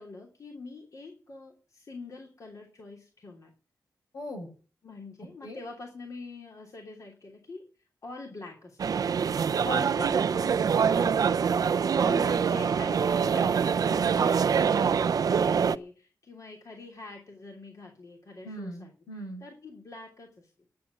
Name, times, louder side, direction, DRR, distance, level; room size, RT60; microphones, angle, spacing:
voice 1, 0.0-3.5 4.8-7.6 8.0-9.2 10.0-11.4 12.0-18.9 19.4-20.7, left 3 dB, 55° left, 0 dB, 3.1 m, -45 dB
voice 2, 4.1-4.5 5.4-5.6 9.6-10.1 14.0-14.3 18.4-19.4, equal, 85° left, 2 dB, 6.8 m, -38 dB
sound 1, 8.8-15.8, right 6 dB, 70° right, 0.5 m, -25 dB
11.0 x 7.5 x 9.9 m, 0.38 s
wide cardioid pair, 90°, 7 cm